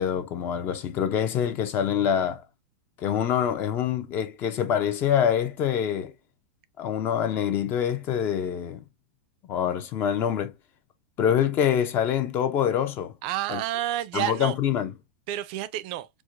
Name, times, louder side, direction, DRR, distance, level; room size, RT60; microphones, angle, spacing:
voice 1, 0.0-2.4 3.0-6.1 6.8-8.8 9.5-10.5 11.2-13.1 13.5-13.6 14.1-14.9, left 9 dB, 30° left, 0.5 m, -25 dB
voice 2, 13.2-14.5 15.3-16.1, right 13 dB, 45° right, 0.4 m, -29 dB
4.6 x 2.1 x 2.4 m
supercardioid pair, 155°, 7 cm